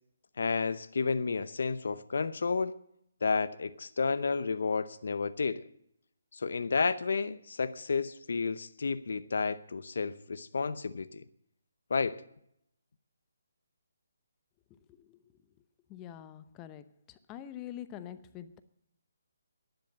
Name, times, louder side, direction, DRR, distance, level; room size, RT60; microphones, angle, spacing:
voice 1, 0.4-2.7 3.2-5.6 6.3-11.2 11.9-12.2, left 4 dB, 65° left, 0.7 m, -31 dB
voice 2, 15.9-18.6, left 11 dB, 20° left, 0.8 m, -45 dB
11.5 x 10.5 x 7.8 m
figure-of-eight pair, 150°, 0 cm